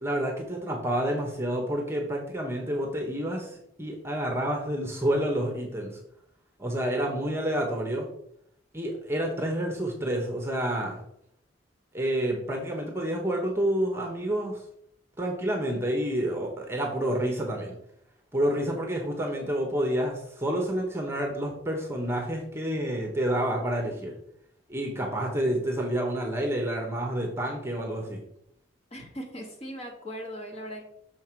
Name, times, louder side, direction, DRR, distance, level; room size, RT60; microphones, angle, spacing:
voice 1, 0.0-6.0 6.6-8.1 8.7-11.0 11.9-14.6 15.2-17.7 18.3-24.2 24.7-28.2, right 1 dB, 10° right, 1 dB, 1.1 m, -29 dB
voice 2, 28.9-30.8, equal, 30° left, 0 dB, 1.6 m, -39 dB
6.5 x 5.7 x 4.6 m, 0.73 s
head